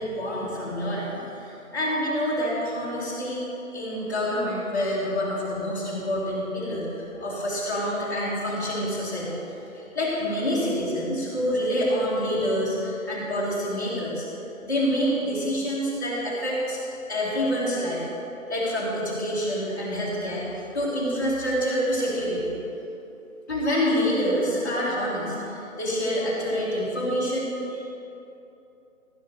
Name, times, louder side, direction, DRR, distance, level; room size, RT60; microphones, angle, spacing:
voice 1, 0.0-3.4 3.7-14.3 14.6-16.8 17.1-18.0 18.5-22.5 23.5-27.8, equal, 15° left, -11 dB, 2.0 m, -27 dB
15.5 x 5.3 x 6.7 m, 3.0 s
hypercardioid pair, 180°, 42 cm